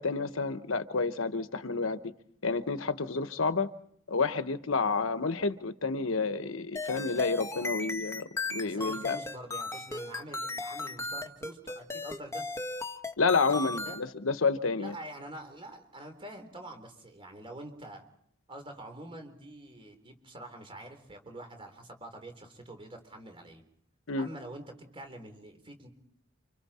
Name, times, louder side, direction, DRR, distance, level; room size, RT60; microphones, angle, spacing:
voice 1, 0.0-2.1 2.4-3.7 4.1-9.2 13.2-14.9 24.1-24.3, left 4 dB, 85° left, 1.1 m, -30 dB
sound 1, 6.8-14.0, left 3 dB, 15° left, 1.3 m, -36 dB
voice 2, 8.6-12.5 13.5-14.0 14.7-18.0 18.5-23.6 24.2-25.9, right 1 dB, 25° right, 3.7 m, -46 dB
28.5 x 26.0 x 4.3 m
head